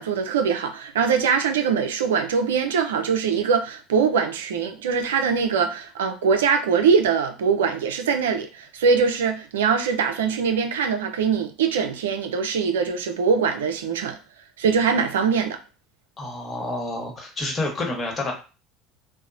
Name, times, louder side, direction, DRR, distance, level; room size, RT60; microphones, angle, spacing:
voice 1, 0.0-14.2 14.6-15.6, right 6 dB, 80° right, 0.3 m, -22 dB
voice 2, 16.2-18.3, left 2 dB, 30° left, 1.1 m, -29 dB
2.8 x 2.0 x 2.5 m
hypercardioid pair, 75°, 0 cm